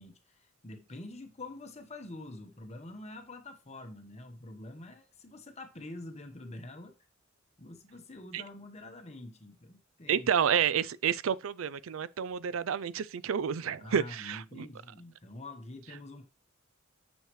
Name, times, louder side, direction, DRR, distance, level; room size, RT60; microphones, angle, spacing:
voice 1, 0.0-6.9 7.6-10.3 13.6-16.2, left 2 dB, 35° left, 1.1 m, -46 dB
voice 2, 10.1-14.7, right 8 dB, 75° right, 0.4 m, -30 dB
9.3 x 6.3 x 3.1 m
head